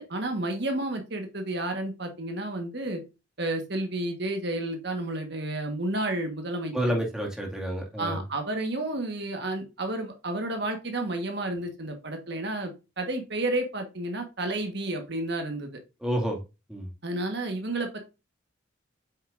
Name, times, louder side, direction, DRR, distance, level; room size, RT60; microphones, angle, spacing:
voice 1, 0.0-3.0 3.4-6.7 8.0-15.7 17.0-18.0, right 2 dB, 55° right, 4 dB, 1.5 m, -31 dB
voice 2, 6.7-8.2 16.0-16.4 16.7-16.9, equal, 5° right, -1 dB, 2.1 m, -29 dB
8.2 x 6.6 x 2.6 m, 0.27 s
head